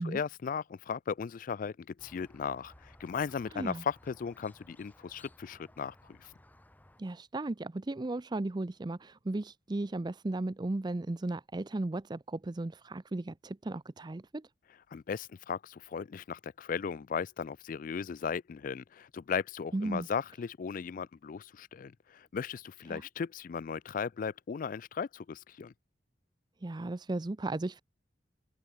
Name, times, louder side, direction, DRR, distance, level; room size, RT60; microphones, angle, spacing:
voice 1, 0.0-6.3 14.9-25.7, left 6 dB, 45° left, 0.3 m, -37 dB
Squeak, 2.0-7.0, left 1 dB, 10° left, 1.5 m, -59 dB
voice 2, 3.5-3.8 7.0-14.5 19.7-20.1 22.9-23.0 26.6-27.8, right 2 dB, 25° right, 0.5 m, -35 dB
open air
head